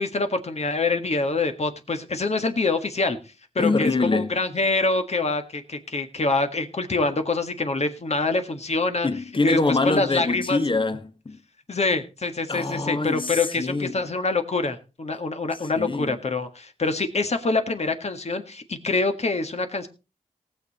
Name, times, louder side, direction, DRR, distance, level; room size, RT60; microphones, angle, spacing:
voice 1, 0.0-3.2 3.6-9.1 9.4-10.6 11.7-19.9, left 3 dB, 55° left, 1.7 m, -25 dB
voice 2, 3.6-4.3 9.0-11.4 12.5-13.9 15.8-16.1, left 3 dB, 40° left, 1.3 m, -24 dB
18.5 x 7.0 x 4.2 m
wide cardioid pair, 65°, 13 cm